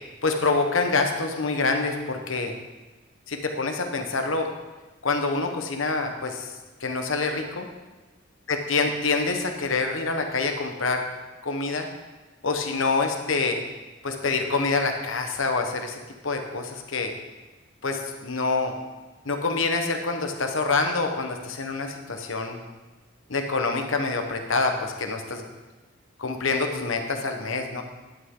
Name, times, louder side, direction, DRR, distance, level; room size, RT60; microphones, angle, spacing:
voice 1, 0.2-2.5 3.3-4.5 5.0-6.5 6.8-7.7 8.5-11.0 11.4-11.9 12.4-13.6 14.0-17.1 17.8-18.7 19.2-22.6 23.3-25.4 26.2-27.8, left 3 dB, 75° left, 4 dB, 1.1 m, -26 dB
10.5 x 8.6 x 3.8 m, 1.2 s
head